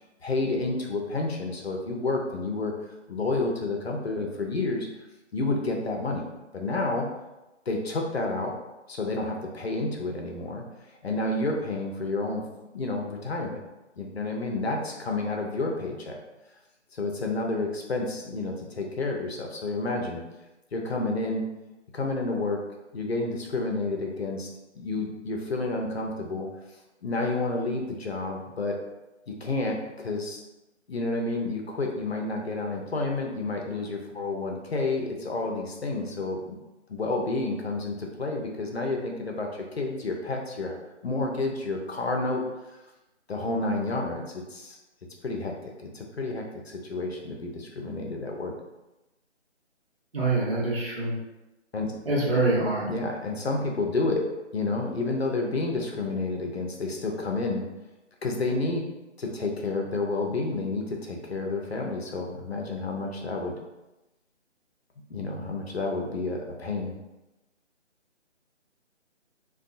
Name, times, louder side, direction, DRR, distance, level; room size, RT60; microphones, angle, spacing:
voice 1, 0.2-2.8 3.1-4.9 5.3-6.3 6.5-7.1 7.7-8.5 8.9-10.6 11.0-12.5 12.7-13.6 14.0-16.2 16.9-20.2 20.7-21.5 21.9-22.6 22.9-24.5 24.8-26.5 27.0-28.8 29.3-30.4 30.9-36.6 36.9-40.8 41.0-42.4 43.3-44.8 45.2-48.5 51.7-51.9 52.8-57.7 58.2-58.9 59.2-63.6 65.1-66.9, left 2 dB, 60° left, 1 dB, 0.5 m, -30 dB
voice 2, 50.1-51.1 52.1-52.8, right 2 dB, 55° right, -6 dB, 1.0 m, -25 dB
2.6 x 2.3 x 2.4 m, 1.0 s
figure-of-eight pair, 150°, 36 cm